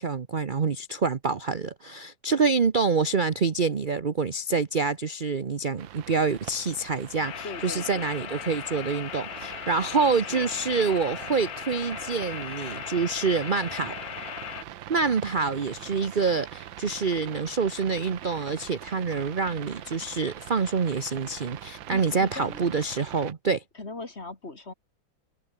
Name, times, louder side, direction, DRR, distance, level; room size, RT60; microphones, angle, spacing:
voice 1, 0.0-13.9 14.9-23.6, right 4 dB, 40° right, 0.7 m, -26 dB
sound 1, 5.8-23.3, right 12 dB, 75° right, 1.7 m, -43 dB
sound 2, 7.2-14.6, left 13 dB, 70° left, 0.9 m, -38 dB
voice 2, 7.4-8.1 9.9-10.5 21.9-22.8 23.7-24.7, left 3 dB, 30° left, 3.1 m, -40 dB
omnidirectional pair, 2.2 m